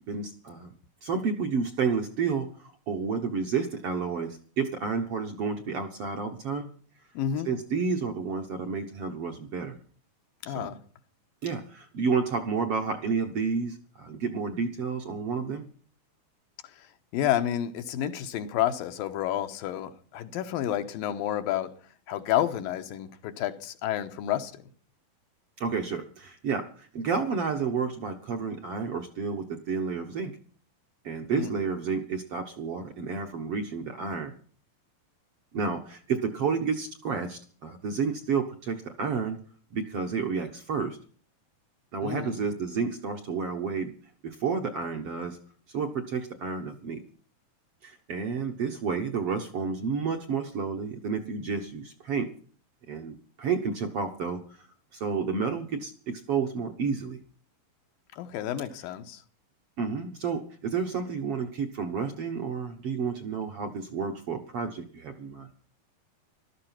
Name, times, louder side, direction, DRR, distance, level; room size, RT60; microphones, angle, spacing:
voice 1, 0.1-0.7 1.0-6.7 7.4-9.8 10.5-10.7 11.4-15.7 25.6-30.3 31.0-34.3 35.5-39.4 39.7-41.0 41.9-43.9 44.2-45.4 45.7-47.0 47.8-52.3 52.9-54.7 54.9-57.2 59.8-65.5, right 5 dB, 60° right, 1.6 m, -30 dB
voice 2, 7.1-7.5 10.4-10.8 16.6-16.9 17.1-21.7 22.1-24.6 31.3-31.5 42.0-42.4 58.2-59.2, left 11 dB, 80° left, 2.8 m, -30 dB
14.5 x 13.0 x 5.8 m
omnidirectional pair, 4.1 m